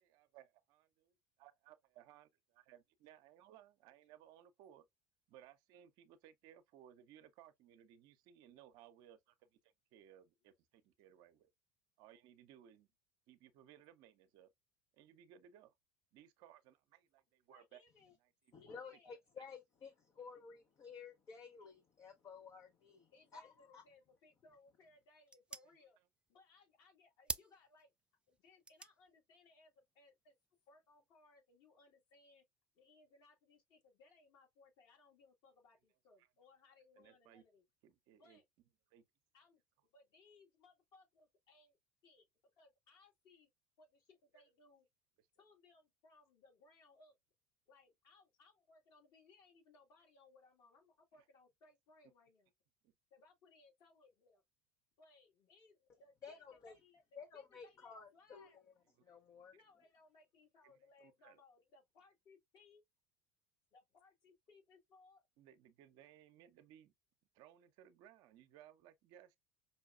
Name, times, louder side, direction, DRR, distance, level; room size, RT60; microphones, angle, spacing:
voice 1, 0.0-0.9 1.4-2.3 2.5-4.9 5.3-11.5 12.0-12.9 13.3-14.5 14.9-15.7 16.1-17.8 18.2-18.5 19.4-19.5 25.7-25.8 36.2-36.3 37.0-37.4 37.8-38.4 38.9-39.0 44.3-44.4 52.8-52.9 59.1-59.6 60.6-61.4 65.4-66.9 67.3-69.4, right 11 dB, 60° right, 0.6 m, -62 dB
voice 2, 17.5-18.1 18.6-19.2 23.1-26.0 26.3-27.9 28.3-30.4 30.7-32.4 32.7-37.6 38.2-38.4 39.3-39.6 39.9-41.8 42.0-42.3 42.6-43.5 43.8-44.9 45.4-47.2 47.7-52.5 53.1-54.4 55.0-58.6 59.5-62.8 63.7-65.3, left 3 dB, 55° left, 1.9 m, -67 dB
voice 3, 18.5-23.8 56.2-56.7 57.2-58.5 59.1-59.5, left 5 dB, 40° left, 0.7 m, -53 dB
sound 1, 24.3-31.1, right 3 dB, 10° right, 0.3 m, -52 dB
5.3 x 2.3 x 2.3 m
hypercardioid pair, 75°, 8 cm